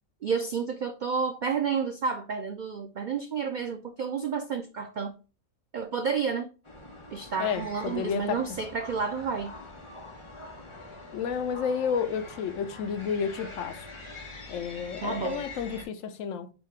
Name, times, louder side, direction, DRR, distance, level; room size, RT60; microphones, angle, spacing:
voice 1, 0.2-5.2 5.7-6.5 7.1-9.5 15.0-15.4, right 6 dB, 90° right, 0.4 m, -30 dB
sound 1, 6.6-15.8, left 2 dB, 25° left, 0.8 m, -44 dB
voice 2, 7.4-8.6 11.1-13.9 14.5-16.5, left 7 dB, 75° left, 0.9 m, -31 dB
4.1 x 2.8 x 4.6 m
omnidirectional pair, 1.4 m